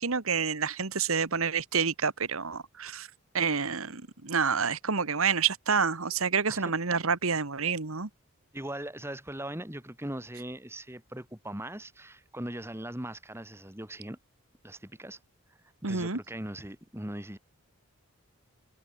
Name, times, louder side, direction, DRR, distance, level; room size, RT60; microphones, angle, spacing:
voice 1, 0.0-3.1 3.3-8.1 15.8-16.2, right 5 dB, 75° right, 1.6 m, -28 dB
voice 2, 8.5-14.2 14.6-15.2 15.9-17.4, right 1 dB, 10° right, 2.2 m, -39 dB
head